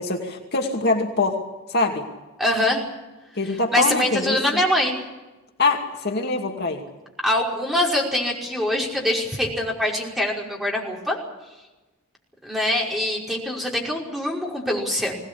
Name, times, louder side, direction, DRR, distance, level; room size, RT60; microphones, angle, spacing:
voice 1, 0.0-1.4 1.7-2.1 3.4-4.4 5.6-6.8, left 3 dB, 50° left, 2 dB, 2.4 m, -23 dB
voice 2, 2.4-2.8 3.7-5.0 7.2-11.2 12.4-15.2, left 1 dB, ahead, -2 dB, 5.5 m, -23 dB
23.0 x 18.5 x 8.5 m, 1.1 s
head